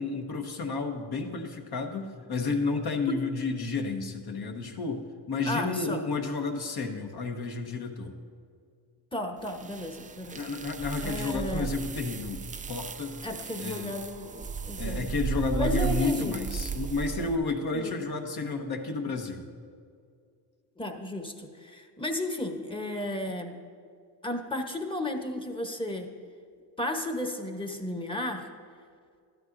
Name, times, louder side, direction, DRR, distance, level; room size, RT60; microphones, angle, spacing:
voice 1, 0.0-8.1 10.4-13.2 13.6-14.0 14.8-19.5, left 4 dB, 50° left, 3 dB, 1.3 m, -31 dB
voice 2, 5.5-6.0 9.1-10.4 11.0-11.7 13.2-15.1 15.5-16.4 17.7-17.9 20.8-23.6 24.2-26.1 26.8-28.5, left 1 dB, 10° left, 4 dB, 1.1 m, -34 dB
sound 1, 9.5-17.4, right 7 dB, 20° right, 0.3 m, -35 dB
13.5 x 12.0 x 2.7 m, 2.2 s
cardioid pair, 85°, 47 cm